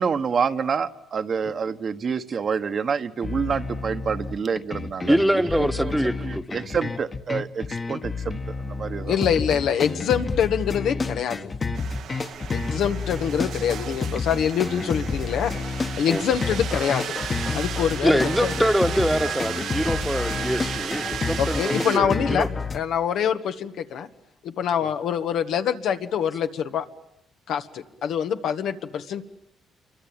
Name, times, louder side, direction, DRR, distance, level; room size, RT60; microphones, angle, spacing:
voice 1, 0.0-5.9 6.2-9.3, right 6 dB, 50° right, 9 dB, 1.3 m, -28 dB
sound 1, 3.2-22.8, left 4 dB, 35° left, 1.5 m, -30 dB
voice 2, 5.1-6.4 16.1-16.2 18.0-22.5, equal, ahead, 9 dB, 1.3 m, -24 dB
voice 3, 9.1-11.4 12.5-17.2 17.5-18.7 21.4-22.5 22.7-24.1 24.4-26.8 27.5-29.2, left 8 dB, 75° left, 7 dB, 1.7 m, -25 dB
sound 2, 11.8-22.0, right 9 dB, 75° right, 1.3 m, -35 dB
28.0 x 24.0 x 8.9 m, 0.81 s
cardioid pair, 90°, 0 cm